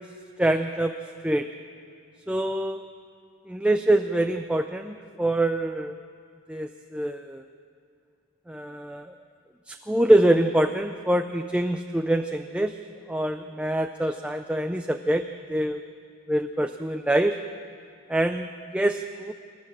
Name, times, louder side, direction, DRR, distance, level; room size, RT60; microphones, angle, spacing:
voice 1, 0.4-0.9 1.2-1.5 2.3-2.8 3.5-6.0 6.5-7.4 8.5-9.1 9.7-12.8 13.1-15.8 16.3-17.4 18.1-19.3, right 1 dB, 5° right, 6 dB, 0.4 m, -25 dB
28.0 x 13.5 x 7.3 m, 2.5 s
head